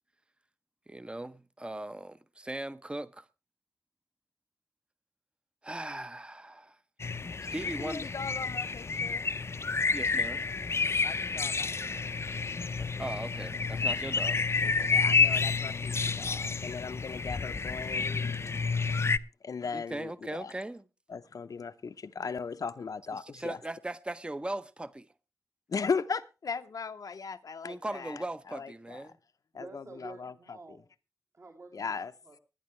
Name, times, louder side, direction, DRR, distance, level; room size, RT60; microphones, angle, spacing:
voice 1, 0.9-3.3 5.6-6.8 7.5-8.1 9.9-10.4 12.7-15.0 19.7-20.8 23.1-25.1 27.6-29.1, right 1 dB, 15° right, 0.7 m, -39 dB
sound 1, 7.0-19.2, left 4 dB, 45° left, 0.6 m, -30 dB
voice 2, 7.8-9.3 11.0-12.1 14.9-18.4 19.4-20.1 20.4-20.5 21.1-23.6 25.7-29.0 29.5-30.3 31.7-32.1, left 5 dB, 75° left, 0.7 m, -38 dB
voice 3, 29.5-30.9 31.3-32.4, right 3 dB, 55° right, 3.0 m, -49 dB
19.5 x 9.8 x 3.2 m
wide cardioid pair, 100°, 6 cm